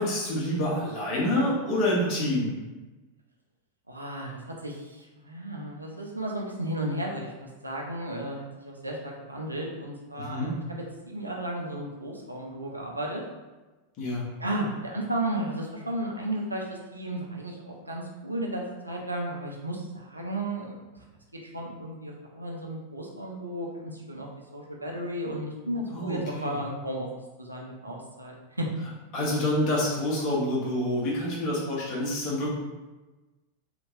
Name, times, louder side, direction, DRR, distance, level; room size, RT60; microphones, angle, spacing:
voice 1, 0.0-2.5 10.2-10.5 14.0-14.2 25.9-26.6 29.1-32.5, left 1 dB, 40° left, -5 dB, 1.1 m, -27 dB
voice 2, 3.9-10.6 11.0-13.2 14.4-16.6 16.9-20.8 21.5-24.3 24.5-27.1 27.4-28.7, right 1 dB, 85° right, -1 dB, 0.5 m, -34 dB
2.9 x 2.9 x 2.5 m, 1.2 s
figure-of-eight pair, 90°, 0 cm